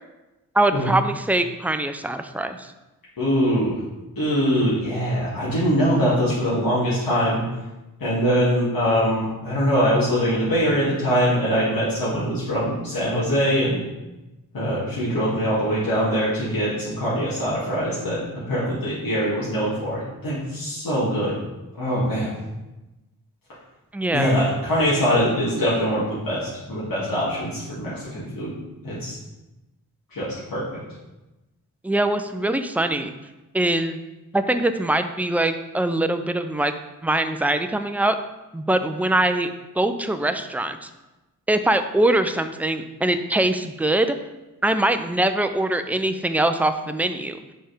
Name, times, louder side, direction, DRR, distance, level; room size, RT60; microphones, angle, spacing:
voice 1, 0.5-2.7 23.9-24.4 31.8-33.1 33.5-34.0 34.3-36.7 37.0-38.2 38.5-39.5 39.8-40.9 41.5-44.1 44.6-47.4, right 1 dB, 5° right, 8 dB, 0.5 m, -22 dB
voice 2, 3.2-3.7 4.2-7.4 8.0-13.8 14.5-18.2 18.5-21.4 21.8-22.3 24.1-28.5 28.8-29.2 30.1-30.8, equal, 75° left, -9 dB, 2.1 m, -23 dB
5.4 x 4.4 x 5.0 m, 1.0 s
cardioid pair, 45°, 35 cm